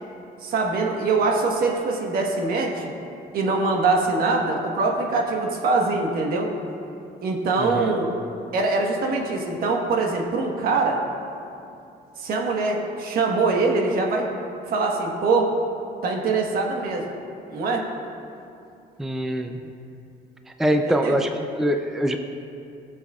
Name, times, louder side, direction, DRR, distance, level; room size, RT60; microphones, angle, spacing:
voice 1, 0.4-2.9 3.3-6.5 7.2-8.1 8.5-11.0 12.2-14.3 14.7-15.5 16.0-17.1 17.5-17.8 20.8-21.2, right 3 dB, 60° right, 1 dB, 1.4 m, -23 dB
voice 2, 7.6-7.9 19.0-19.7 20.6-21.3 21.6-22.2, right 1 dB, ahead, 5 dB, 0.4 m, -23 dB
16.5 x 7.5 x 2.4 m, 2.6 s
cardioid pair, 110°, 17 cm